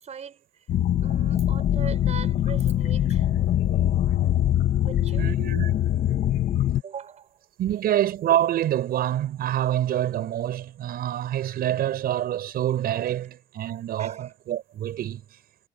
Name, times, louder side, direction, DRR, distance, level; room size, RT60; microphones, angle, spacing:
voice 1, 0.0-0.4 1.0-3.3 4.8-5.3 6.8-7.4 14.0-14.3, right 7 dB, 40° right, 6.1 m, -40 dB
sound 1, 0.7-6.8, left 11 dB, 60° left, 2.2 m, -23 dB
voice 2, 5.2-5.7 7.6-15.2, right 12 dB, 65° right, 5.9 m, -26 dB
cardioid pair, 110°, 17 cm